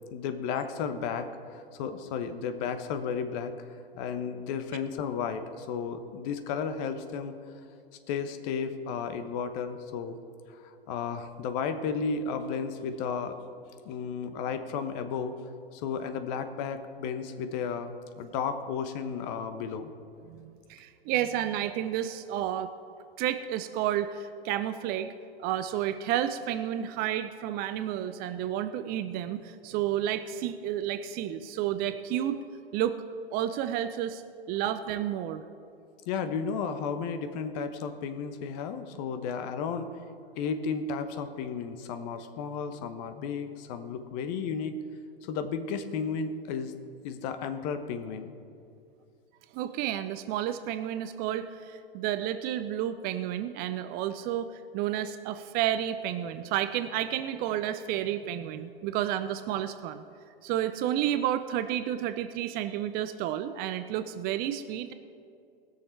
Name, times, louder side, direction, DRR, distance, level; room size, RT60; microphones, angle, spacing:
voice 1, 0.1-3.7 3.9-7.4 8.1-10.2 10.5-13.4 13.8-15.4 15.7-17.9 18.2-19.9 36.1-39.9 40.4-44.8 45.2-46.7 47.0-48.3, left 6 dB, 45° left, 9 dB, 1.0 m, -33 dB
voice 2, 20.2-22.7 23.2-25.1 25.4-32.4 32.7-33.0 33.3-34.2 34.5-35.4 49.5-60.0 60.4-64.9, right 11 dB, 30° right, 11 dB, 0.5 m, -31 dB
19.5 x 6.7 x 4.5 m, 2.5 s
figure-of-eight pair, 100°, 30 cm